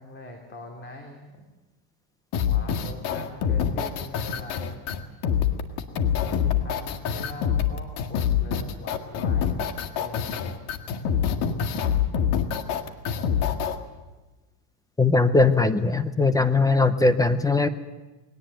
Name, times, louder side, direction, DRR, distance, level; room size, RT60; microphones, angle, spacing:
voice 1, 0.0-1.4 2.4-4.9 6.1-10.6, left 2 dB, 25° left, 3 dB, 2.8 m, -42 dB
sound 1, 2.3-13.8, left 8 dB, 55° left, 1.9 m, -25 dB
voice 2, 15.0-17.7, left 3 dB, 5° left, 11 dB, 0.7 m, -20 dB
21.0 x 18.5 x 8.9 m, 1.2 s
supercardioid pair, 140°, 48 cm